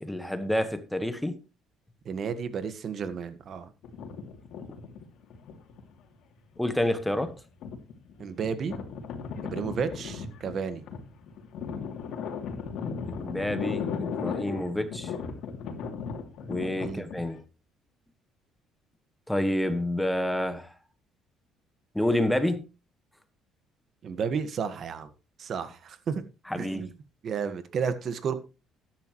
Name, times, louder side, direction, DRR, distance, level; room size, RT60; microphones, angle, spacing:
voice 1, 0.0-1.4 4.6-4.7 6.6-7.4 13.1-15.1 16.5-17.4 19.3-20.7 21.9-22.7 26.5-26.9, left 1 dB, 5° left, 1.5 m, -29 dB
voice 2, 2.1-3.7 8.2-8.7 9.5-10.8 16.8-17.0 24.0-25.1 25.4-26.2 26.6-26.9 27.2-28.4, right 6 dB, 50° right, 1.6 m, -32 dB
sound 1, 3.8-6.0 6.6-17.4, left 6 dB, 70° left, 2.8 m, -36 dB
13.0 x 10.5 x 3.2 m
cardioid pair, 115°, 0 cm